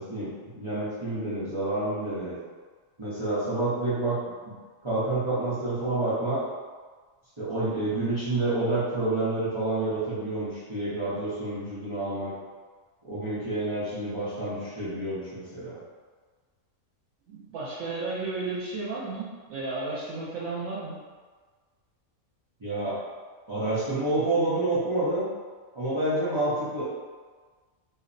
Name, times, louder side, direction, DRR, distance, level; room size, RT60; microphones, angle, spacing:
voice 1, 0.0-2.3 3.0-4.2 4.8-6.4 7.4-12.3 13.0-15.8 22.6-22.9 23.5-25.3 25.7-26.8, right 2 dB, 30° right, -13 dB, 0.6 m, -28 dB
voice 2, 17.3-21.0, right 3 dB, 85° right, -7 dB, 1.0 m, -33 dB
2.6 x 2.1 x 2.5 m, 1.5 s
omnidirectional pair, 1.4 m